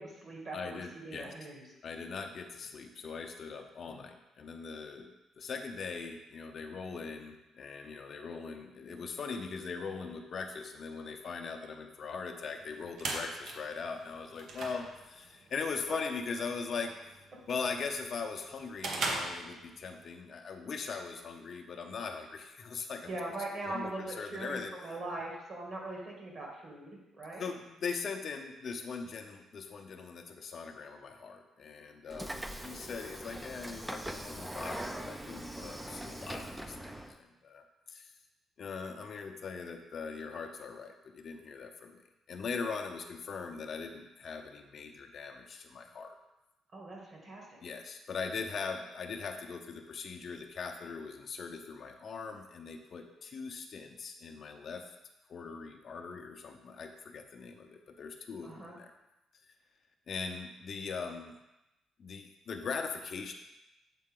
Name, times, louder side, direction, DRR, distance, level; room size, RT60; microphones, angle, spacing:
voice 1, 0.0-1.7 14.6-14.8 15.9-16.0 23.0-27.5 46.7-47.6 58.4-58.8, right 2 dB, 50° right, -2 dB, 2.2 m, -41 dB
voice 2, 0.5-1.3 1.8-16.9 17.5-23.2 23.6-24.7 27.4-38.1 38.6-42.0 42.3-46.2 47.6-54.9 55.3-58.9 60.1-61.4 62.0-63.3, left 5 dB, 55° left, 4 dB, 0.6 m, -40 dB
sound 1, 12.6-20.1, right 3 dB, 70° right, 0.9 m, -41 dB
Train / Sliding door, 32.1-37.2, right 1 dB, 10° right, 0.5 m, -42 dB
7.5 x 3.9 x 3.7 m, 0.95 s
cardioid pair, 90°, 0 cm